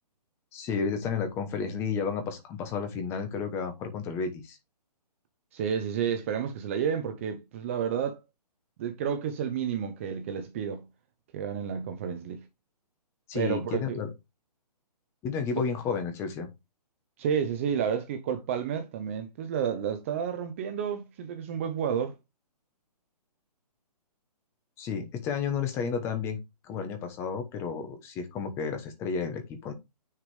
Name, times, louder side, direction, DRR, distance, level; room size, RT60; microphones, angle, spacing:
voice 1, 0.5-4.6 13.3-14.1 15.2-16.5 24.8-29.7, left 5 dB, 10° left, 1.1 m, -32 dB
voice 2, 5.5-8.2 8.8-10.8 11.3-12.4 13.3-14.0 17.2-22.1, right 7 dB, 20° right, 0.6 m, -30 dB
9.7 x 5.0 x 3.4 m
hypercardioid pair, 165°, 21 cm